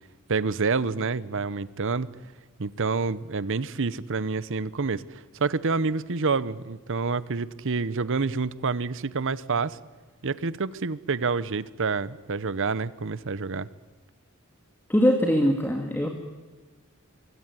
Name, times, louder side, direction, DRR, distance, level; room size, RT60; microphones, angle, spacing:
voice 1, 0.3-2.1 2.6-9.8 10.2-13.7, right 4 dB, 65° right, 18 dB, 0.9 m, -28 dB
voice 2, 14.9-16.1, equal, 10° left, 3 dB, 1.9 m, -22 dB
23.0 x 16.5 x 9.6 m, 1.3 s
head